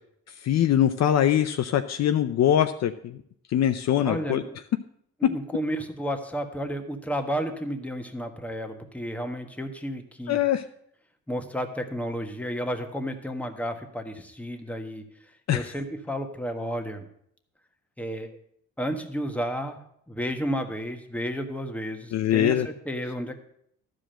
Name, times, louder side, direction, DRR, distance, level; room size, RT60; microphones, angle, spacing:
voice 1, 0.4-3.2 3.5-4.4 5.2-5.3 10.3-10.6 15.5-15.6 22.1-22.7, left 10 dB, 60° left, 8 dB, 0.6 m, -22 dB
voice 2, 4.0-4.6 5.2-10.4 11.3-15.0 15.5-17.1 18.0-18.3 18.8-19.8 20.1-23.3, equal, 5° left, 4 dB, 1.4 m, -32 dB
12.0 x 5.0 x 7.6 m, 0.69 s
cardioid pair, 90°, 30 cm